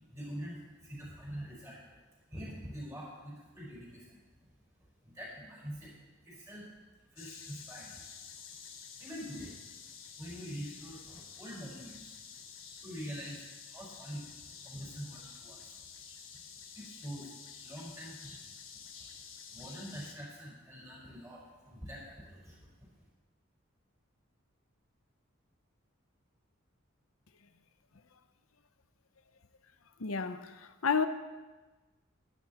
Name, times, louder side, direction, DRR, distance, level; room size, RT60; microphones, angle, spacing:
voice 1, 0.1-2.0 2.3-4.2 5.0-5.9 6.2-6.7 7.1-8.0 9.0-9.6 10.2-12.4 12.8-15.8 16.7-17.3 17.6-18.6 19.0-19.1 19.5-22.7, equal, 15° right, 4.7 m, -45 dB
sound 1, 7.2-20.1, left 6 dB, 70° left, 1.5 m, -50 dB
voice 2, 30.0-30.5 30.8-31.1, left 5 dB, 85° left, 0.8 m, -29 dB
13.0 x 11.5 x 4.3 m
head